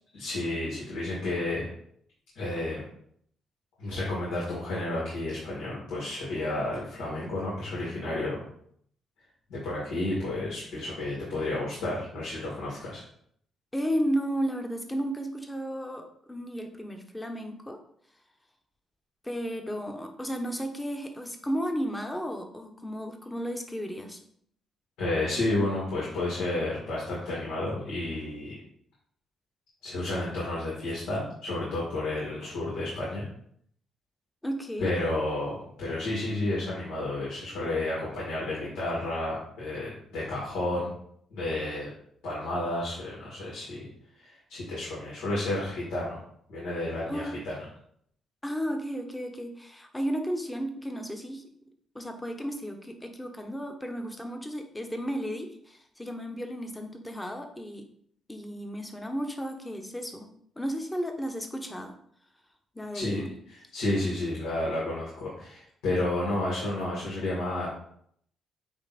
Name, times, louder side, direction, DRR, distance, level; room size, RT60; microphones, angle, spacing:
voice 1, 0.1-1.7 2.4-2.8 3.8-8.4 9.5-13.0 25.0-28.5 29.8-33.3 34.8-40.9 41.3-41.9 42.2-43.9 44.2-46.2 46.5-47.5 62.9-67.7, left 2 dB, 85° left, -6 dB, 2.3 m, -31 dB
voice 2, 13.7-17.8 19.2-24.2 34.4-34.9 47.1-47.4 48.4-51.4 51.9-57.9 58.3-60.3 60.6-61.9 62.7-63.3, equal, 10° left, 5 dB, 1.0 m, -33 dB
8.6 x 2.9 x 4.2 m, 0.66 s
cardioid pair, 90°, 0 cm